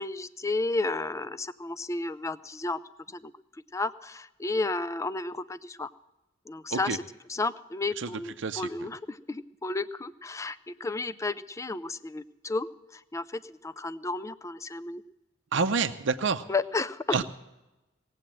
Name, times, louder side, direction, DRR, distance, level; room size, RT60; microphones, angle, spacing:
voice 1, 0.0-2.8 3.1-3.3 3.7-5.9 6.5-7.0 7.3-15.0 16.5-17.2, left 3 dB, 15° left, 15 dB, 0.4 m, -32 dB
voice 2, 15.5-16.4 17.1-17.2, right 5 dB, 65° right, 7 dB, 0.6 m, -27 dB
18.5 x 7.9 x 7.5 m, 1.0 s
head